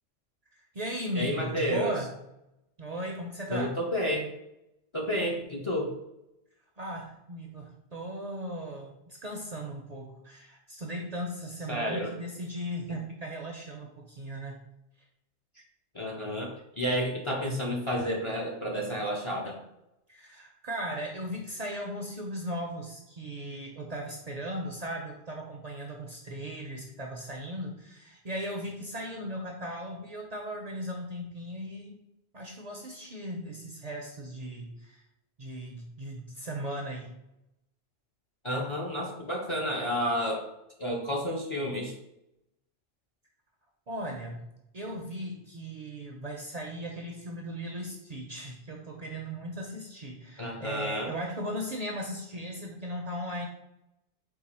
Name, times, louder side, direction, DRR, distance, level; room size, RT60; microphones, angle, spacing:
voice 1, 0.5-2.1 2.8-3.7 6.8-14.6 20.1-32.0 32.3-35.0 35.4-37.2 43.9-44.5 44.7-53.5, equal, 50° right, 0 dB, 0.5 m, -37 dB
voice 2, 1.1-1.9 3.5-4.3 4.9-5.9 11.7-12.1 15.9-19.6 38.4-40.4 40.8-41.9 50.4-51.1, equal, 35° left, -1 dB, 0.5 m, -30 dB
4.6 x 2.4 x 4.1 m, 0.87 s
omnidirectional pair, 1.1 m